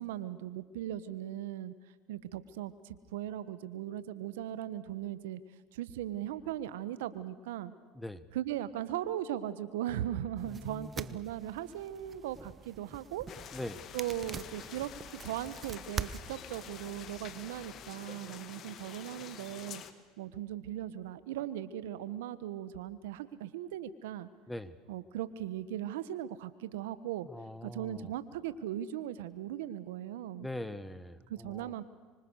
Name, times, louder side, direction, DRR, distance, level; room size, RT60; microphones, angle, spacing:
voice 1, 0.0-1.7 2.1-5.4 5.7-7.7 8.3-13.3 13.9-19.8 20.2-24.3 24.9-27.3 27.6-30.5 31.3-31.8, right 12 dB, 85° right, 15 dB, 1.3 m, -38 dB
voice 2, 10.4-11.2 13.5-13.8 24.5-24.7 27.2-28.1 30.4-31.7, left 1 dB, 5° left, 14 dB, 1.5 m, -42 dB
sound 1, 10.4-17.9, right 6 dB, 30° right, 1.0 m, -45 dB
sound 2, 13.3-19.9, left 9 dB, 50° left, 2.1 m, -48 dB
25.5 x 25.0 x 6.5 m, 1.5 s
supercardioid pair, 90°, 0 cm